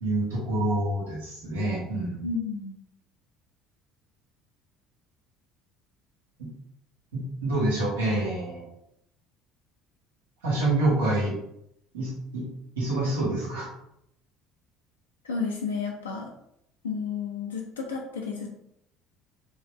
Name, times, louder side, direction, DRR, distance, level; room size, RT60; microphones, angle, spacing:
voice 1, 0.0-2.3 6.4-6.5 7.1-8.6 10.4-11.4 11.9-12.5 12.8-13.7, right 2 dB, 75° right, -5 dB, 1.1 m, -27 dB
voice 2, 2.2-2.8 15.2-16.3 16.8-18.5, left 5 dB, 80° left, -1 dB, 0.4 m, -32 dB
3.1 x 2.7 x 2.9 m, 0.77 s
figure-of-eight pair, 60°, 0 cm